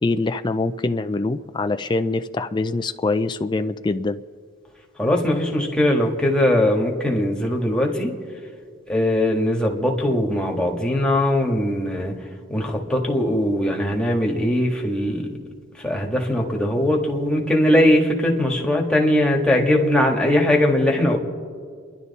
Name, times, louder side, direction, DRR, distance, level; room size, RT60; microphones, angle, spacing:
voice 1, 0.0-4.2, left 3 dB, 20° left, 8 dB, 0.4 m, -24 dB
voice 2, 5.0-8.1 8.9-12.1 12.5-15.4 15.8-21.2, left 1 dB, 5° left, 0 dB, 1.6 m, -20 dB
29.5 x 11.5 x 4.1 m, 2.1 s
head